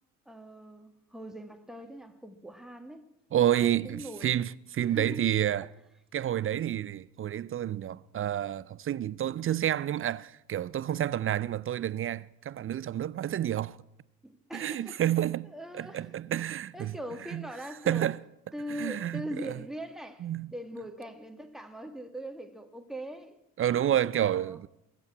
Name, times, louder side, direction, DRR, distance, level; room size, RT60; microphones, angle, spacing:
voice 1, 0.3-3.1 3.4-4.4 4.9-5.4 14.2-15.0 15.4-16.1 16.7-18.1 18.5-23.4 23.8-24.6, equal, ahead, 1.8 m, -41 dB
voice 2, 3.3-5.7 6.1-13.8 14.5-16.9 17.3-17.4 17.9-18.2 18.8-19.5 20.2-20.5 23.6-24.7, right 11 dB, 30° right, 0.5 m, -29 dB
20.5 x 8.2 x 8.4 m
hypercardioid pair, 55°, 45 cm